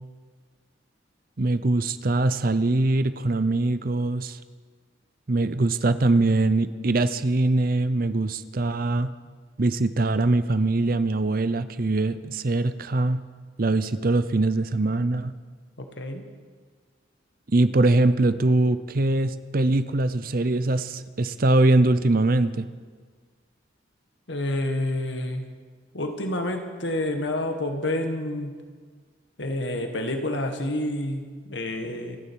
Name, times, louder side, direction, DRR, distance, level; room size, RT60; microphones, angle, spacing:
voice 1, 1.4-4.4 5.3-9.1 9.6-13.2 13.6-15.3 17.5-22.7, right 2 dB, 50° right, 13 dB, 0.7 m, -22 dB
voice 2, 15.8-16.3 24.3-25.5 25.9-28.5 29.4-32.2, left 1 dB, 70° left, 5 dB, 1.8 m, -28 dB
27.0 x 10.0 x 4.7 m, 1.5 s
head